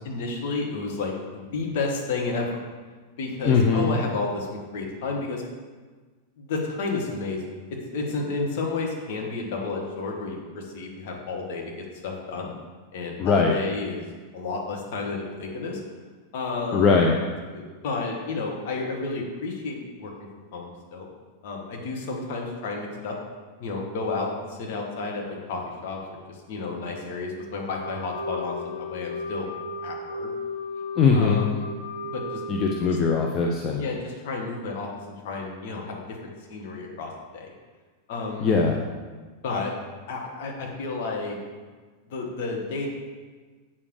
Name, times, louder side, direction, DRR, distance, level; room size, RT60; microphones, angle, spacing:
voice 1, 0.0-2.5 3.2-5.4 6.4-7.4 7.7-11.7 12.0-12.5 12.9-14.0 14.3-15.8 16.3-17.0 17.5-20.1 20.5-21.1 21.4-23.2 23.6-29.5 29.8-30.3 31.1-31.7 32.1-32.4 32.9-33.0 33.8-34.9 35.2-36.2 36.5-37.5 38.1-38.6 39.4-39.7 40.1-41.4 42.1-42.9, left 3 dB, 50° left, -1 dB, 1.9 m, -31 dB
voice 2, 3.5-3.9 13.2-13.5 16.7-17.2 31.0-31.4 32.5-33.8 38.4-38.8, left 5 dB, 30° left, 0 dB, 0.9 m, -20 dB
Wind instrument woodwind instrument, 27.8-33.4, left 2 dB, 75° left, 1.3 m, -35 dB
8.4 x 7.2 x 5.0 m, 1.4 s
figure-of-eight pair, 90°, 0 cm